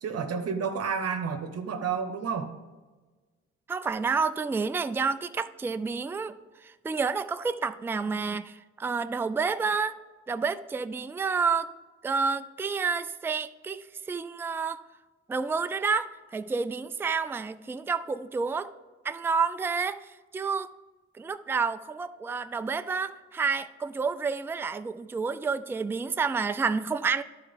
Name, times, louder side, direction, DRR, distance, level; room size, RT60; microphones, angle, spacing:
voice 1, 0.0-2.5, right 6 dB, 55° right, 6 dB, 1.0 m, -30 dB
voice 2, 3.7-6.4 6.6-10.0 10.3-11.7 12.0-14.8 15.3-18.7 19.0-20.7 21.2-27.2, right 5 dB, 10° right, 10 dB, 0.3 m, -29 dB
11.5 x 4.6 x 5.1 m, 1.3 s
cardioid pair, 90°, 30 cm